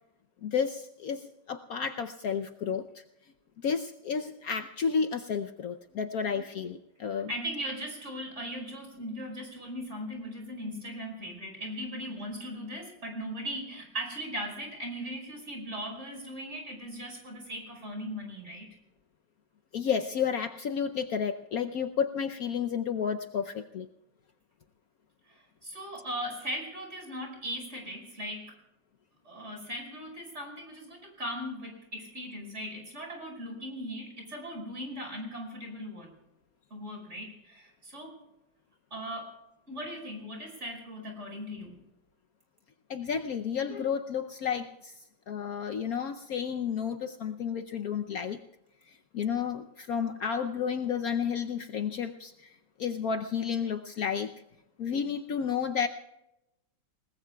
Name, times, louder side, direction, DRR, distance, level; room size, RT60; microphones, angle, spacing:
voice 1, 0.4-3.0 3.6-7.3 19.7-23.9 42.9-48.4 48.9-54.3 54.8-55.9, left 7 dB, 65° left, 7 dB, 1.1 m, -31 dB
voice 2, 7.3-18.8 25.3-28.6 29.2-36.1 36.7-38.2 38.9-39.4 39.7-41.8, equal, 40° right, 1 dB, 5.7 m, -38 dB
28.5 x 19.5 x 2.3 m, 0.90 s
omnidirectional pair, 1.9 m